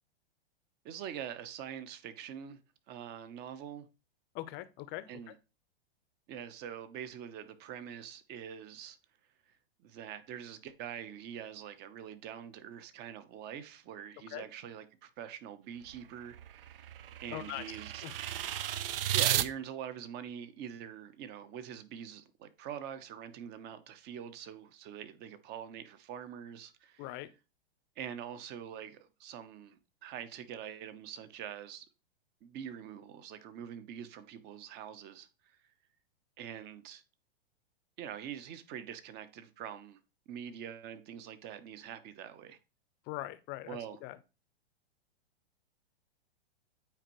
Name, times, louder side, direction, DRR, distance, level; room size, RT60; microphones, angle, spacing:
voice 1, 0.8-2.6 2.9-3.9 5.1-5.3 6.3-9.0 9.8-17.0 17.2-18.0 19.1-27.1 28.0-31.9 32.4-35.3 36.4-37.0 38.0-40.0 40.3-42.6 43.7-44.0, right 9 dB, 30° right, 0.8 m, -44 dB
voice 2, 4.3-5.3 14.3-14.5 17.3-18.1 27.0-27.3 43.1-44.2, left 16 dB, 30° left, 0.6 m, -42 dB
sound 1, 15.8-19.5, right 11 dB, 60° right, 0.6 m, -34 dB
9.0 x 4.4 x 3.1 m
hypercardioid pair, 120°, 32 cm